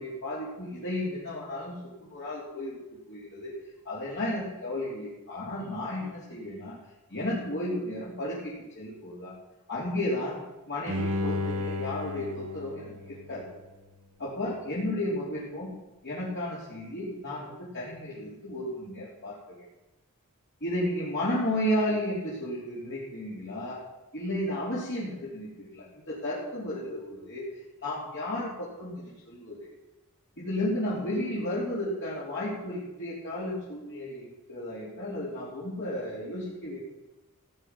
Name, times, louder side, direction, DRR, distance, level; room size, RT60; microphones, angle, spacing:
voice 1, 0.0-1.7 2.1-2.8 3.1-3.5 3.9-6.8 7.1-9.3 9.7-10.4 10.7-13.5 14.2-15.7 16.0-19.6 20.6-23.8 24.1-27.5 27.8-29.7 30.4-36.8, left 1 dB, 55° left, -8 dB, 3.7 m, -33 dB
Bowed string instrument, 10.9-14.0 14.4-14.5, left 2 dB, 80° right, 1.5 m, -33 dB
16.5 x 8.8 x 6.0 m, 0.99 s
head